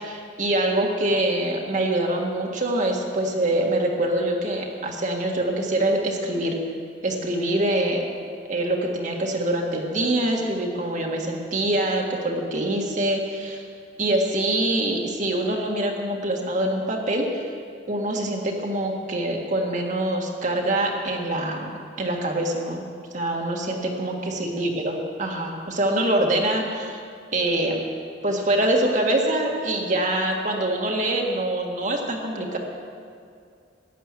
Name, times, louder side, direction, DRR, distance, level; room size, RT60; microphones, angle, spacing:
voice 1, 0.0-6.6 7.0-8.0 8.5-13.6 14.0-17.5 17.9-21.7 22.0-22.8 23.1-27.0 27.3-27.8 28.2-32.6, right 1 dB, 45° right, 0 dB, 1.8 m, -24 dB
15.0 x 10.0 x 7.5 m, 2.3 s
head